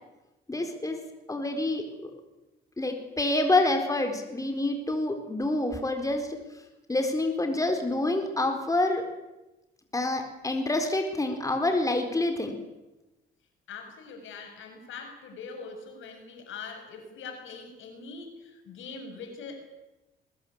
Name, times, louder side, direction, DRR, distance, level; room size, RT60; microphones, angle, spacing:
voice 1, 0.5-1.0 1.3-2.1 2.8-6.3 6.9-9.0 9.9-12.5, left 2 dB, 15° left, 5 dB, 4.3 m, -27 dB
voice 2, 13.7-19.6, left 4 dB, 80° left, 5 dB, 6.6 m, -42 dB
21.5 x 21.0 x 8.8 m, 1.0 s
cardioid pair, 90°, 20 cm